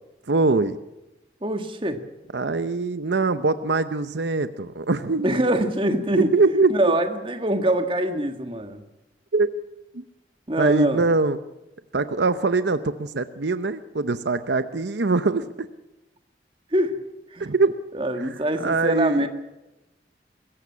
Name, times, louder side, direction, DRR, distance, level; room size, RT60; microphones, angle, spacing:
voice 1, 0.3-0.8 2.3-5.3 6.2-6.7 9.3-9.5 9.9-10.0 10.6-11.4 11.9-15.7 17.4-17.7 18.2-18.3 18.6-19.3, right 3 dB, 75° right, 12 dB, 0.8 m, -22 dB
voice 2, 1.4-2.0 5.2-6.3 6.7-8.8 10.5-11.1 16.7-17.0 17.3-17.5 17.9-19.3, right 1 dB, 30° right, 7 dB, 1.7 m, -24 dB
23.0 x 14.5 x 8.6 m, 0.98 s
head